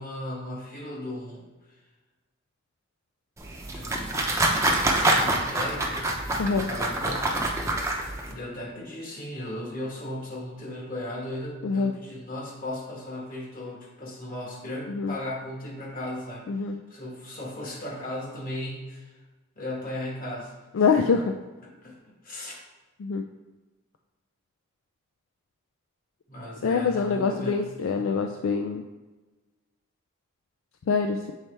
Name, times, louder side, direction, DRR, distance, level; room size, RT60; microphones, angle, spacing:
voice 1, 0.0-1.5 3.6-4.6 5.2-7.5 8.2-16.5 16.9-19.2 19.5-21.1 21.8-22.6 26.3-27.7 27.9-28.2, left 1 dB, 45° left, -3 dB, 1.5 m, -37 dB
sound 1, 3.4-8.3, right 1 dB, 15° right, 0.6 m, -26 dB
voice 2, 20.7-21.3 23.0-23.2 26.6-28.9 30.9-31.3, left 5 dB, 70° left, 4 dB, 0.4 m, -25 dB
7.3 x 4.2 x 3.3 m, 1.2 s
head